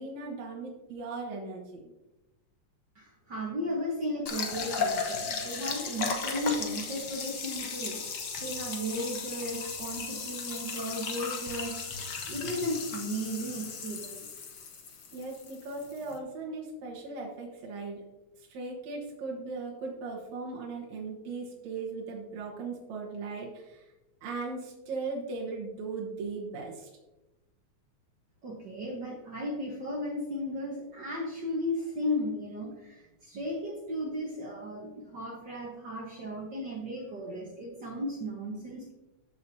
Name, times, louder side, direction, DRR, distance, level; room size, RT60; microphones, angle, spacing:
voice 1, 0.0-1.8 15.1-18.0 18.4-23.8 24.2-26.9, right 3 dB, 70° right, -3 dB, 2.6 m, -38 dB
voice 2, 2.9-8.0 8.4-14.3 28.4-38.9, equal, 50° right, -2 dB, 1.3 m, -35 dB
sound 1, 4.3-16.2, left 5 dB, 65° left, 1.0 m, -36 dB
13.5 x 7.1 x 2.7 m, 1.0 s
omnidirectional pair, 3.5 m